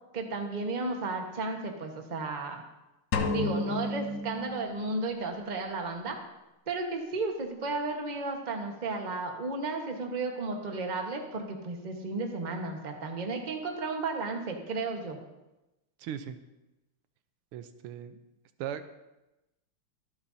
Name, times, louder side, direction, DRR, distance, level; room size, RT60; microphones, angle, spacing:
voice 1, 0.1-2.6 3.3-6.2 6.7-15.2, right 3 dB, 25° right, 3 dB, 1.1 m, -33 dB
sound 1, 3.1-5.2, left 3 dB, 65° left, 1.4 m, -32 dB
voice 2, 16.0-16.4 17.5-18.2 18.6-18.9, right 9 dB, 90° right, 10 dB, 1.7 m, -38 dB
24.0 x 8.8 x 2.7 m, 0.98 s
omnidirectional pair, 2.3 m